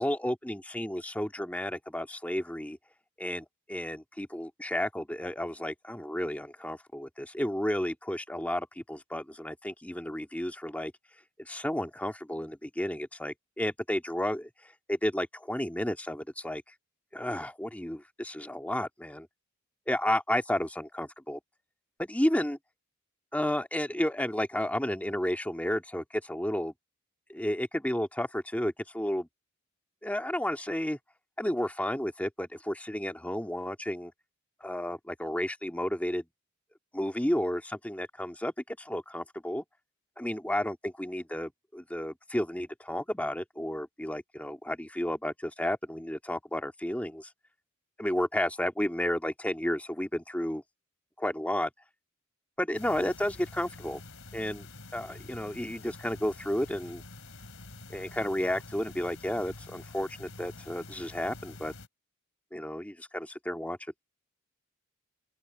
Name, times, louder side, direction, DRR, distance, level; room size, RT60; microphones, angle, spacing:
voice 1, 0.0-2.8 3.2-10.9 11.4-14.5 14.9-16.6 17.1-19.3 19.9-21.4 22.0-22.6 23.3-26.7 27.3-29.3 30.0-31.0 31.4-34.1 34.6-36.2 36.9-39.6 40.2-47.3 48.0-50.6 51.2-51.7 52.6-54.0 54.3-54.7 54.9-57.0 57.9-61.7 62.5-63.8, left 1 dB, 5° left, 1.9 m, -32 dB
sound 1, 52.7-61.9, left 2 dB, 70° left, 3.2 m, -47 dB
open air
head